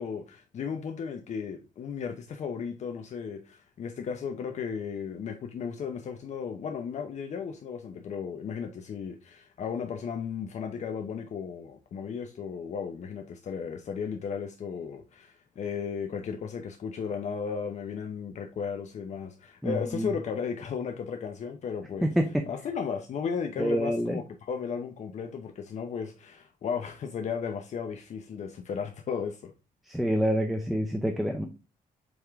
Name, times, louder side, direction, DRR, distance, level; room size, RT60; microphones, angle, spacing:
voice 1, 0.0-22.1 22.5-29.5, left 6 dB, 55° left, 0.8 m, -35 dB
voice 2, 19.6-20.1 22.0-22.4 23.6-24.2 29.9-31.5, equal, ahead, 0.6 m, -27 dB
8.0 x 3.5 x 3.5 m
cardioid pair, 145°, 14 cm